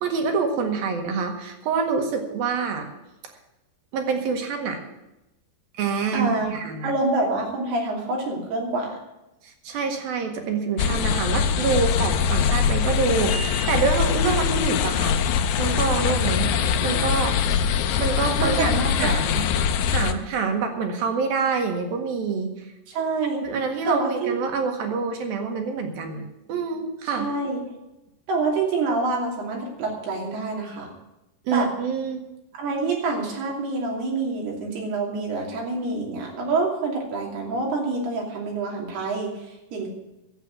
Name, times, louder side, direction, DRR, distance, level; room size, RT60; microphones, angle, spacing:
voice 1, 0.0-2.9 3.9-4.8 5.8-6.9 9.4-15.2 15.6-16.5 16.8-17.4 18.0-19.5 19.9-22.7 23.4-27.3 31.5-32.2, right 5 dB, 70° right, 4 dB, 3.5 m, -26 dB
voice 2, 6.1-6.5 6.8-9.0 18.4-19.2 22.9-23.4 23.9-24.4 27.1-27.6 28.3-30.9 31.5-31.7 32.5-39.9, right 3 dB, 85° right, -1 dB, 4.9 m, -26 dB
sound 1, 10.8-20.1, left 7 dB, 90° left, 1.7 m, -23 dB
12.0 x 8.2 x 9.0 m, 0.94 s
omnidirectional pair, 4.5 m